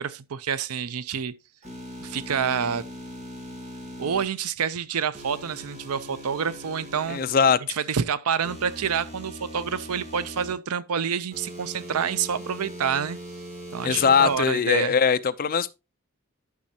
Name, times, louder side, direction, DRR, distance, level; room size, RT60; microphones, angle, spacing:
voice 1, 0.0-1.3 2.0-2.8 4.0-7.2 7.7-13.2 13.7-14.9, right 7 dB, 85° right, 0.6 m, -28 dB
sound 1, 1.6-4.2 5.1-7.5 8.4-10.5 11.3-14.4, equal, 30° right, 2.7 m, -40 dB
voice 2, 7.1-7.8 13.8-15.7, left 6 dB, 40° left, 0.4 m, -21 dB
12.0 x 6.2 x 2.8 m
head